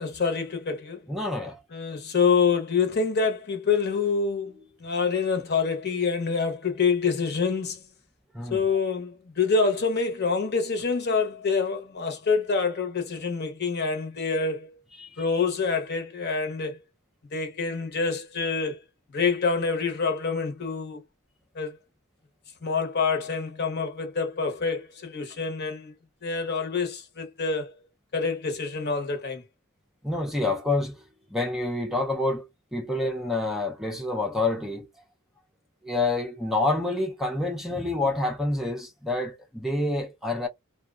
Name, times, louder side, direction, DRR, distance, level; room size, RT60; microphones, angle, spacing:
voice 1, 0.0-1.0 1.7-4.5 4.8-7.8 8.5-14.8 15.2-16.8 17.3-18.8 19.1-21.0 21.5-21.8 22.6-25.9 26.2-27.7 28.1-29.4, left 5 dB, 50° left, 0.9 m, -26 dB
voice 2, 1.1-1.6 8.3-8.7 15.0-15.3 30.0-31.0 31.3-34.9 35.8-40.5, left 2 dB, ahead, 0.5 m, -28 dB
2.7 x 2.3 x 2.4 m
head